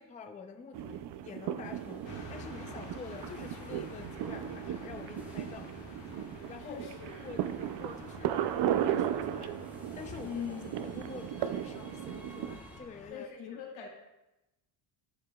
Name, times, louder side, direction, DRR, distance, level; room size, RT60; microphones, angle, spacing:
voice 1, 0.0-5.7 6.4-6.8 7.2-9.6 9.9-13.3, left 5 dB, 20° left, 6 dB, 0.4 m, -47 dB
sound 1, 0.7-12.6, right 10 dB, 60° right, 0.5 m, -36 dB
sound 2, 1.6-12.8, left 1 dB, 5° right, 1.0 m, -53 dB
sound 3, 2.0-13.1, left 3 dB, 65° left, 1.7 m, -50 dB
voice 2, 6.7-7.3 10.2-10.8 13.1-13.9, left 7 dB, 85° left, -2 dB, 2.2 m, -41 dB
12.0 x 4.8 x 2.2 m, 0.94 s
cardioid pair, 135°, 46 cm